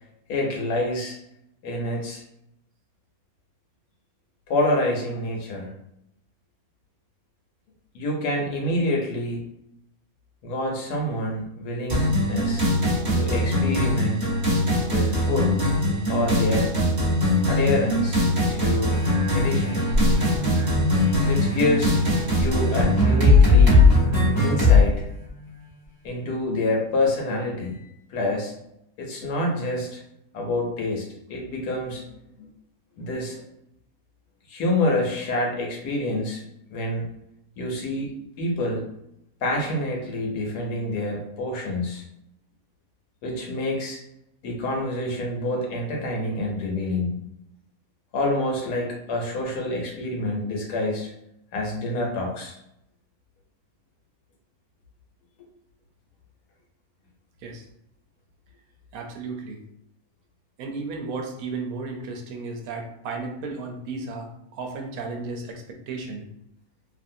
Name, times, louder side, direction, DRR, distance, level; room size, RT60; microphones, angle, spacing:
voice 1, 0.3-1.2 1.6-2.2 4.5-5.7 7.9-9.4 10.4-12.6 13.1-14.3 14.9-15.6 16.1-16.7 17.5-19.0 19.3-19.9 21.3-22.0 22.4-23.9 24.4-25.1 26.0-28.5 29.0-30.0 30.3-32.0 33.0-33.4 34.5-36.4 36.7-37.1 37.6-38.8 39.4-42.0 43.2-44.0 44.4-47.2 48.1-51.1 51.5-52.5, left 1 dB, 85° left, -1 dB, 1.3 m, -27 dB
sound 1, 11.9-24.8, left 2 dB, 35° right, 1.0 m, -20 dB
sound 2, 18.9-26.1 26.6-26.7, equal, 50° left, 0.3 m, -31 dB
voice 2, 58.9-59.6 60.6-66.3, right 3 dB, 75° right, 2 dB, 1.0 m, -34 dB
2.8 x 2.5 x 2.6 m, 0.79 s
omnidirectional pair, 1.6 m